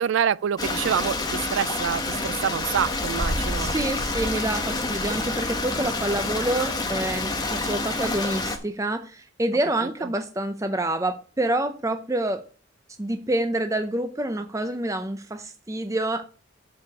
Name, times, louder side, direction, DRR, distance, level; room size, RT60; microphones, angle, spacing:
voice 1, 0.0-3.7, right 8 dB, 65° right, 0.3 m, -26 dB
Stream, 0.6-8.6, left 2 dB, 20° left, 1.2 m, -28 dB
voice 2, 3.6-12.4 13.0-16.3, right 1 dB, 15° right, 0.5 m, -27 dB
8.1 x 5.0 x 7.0 m
head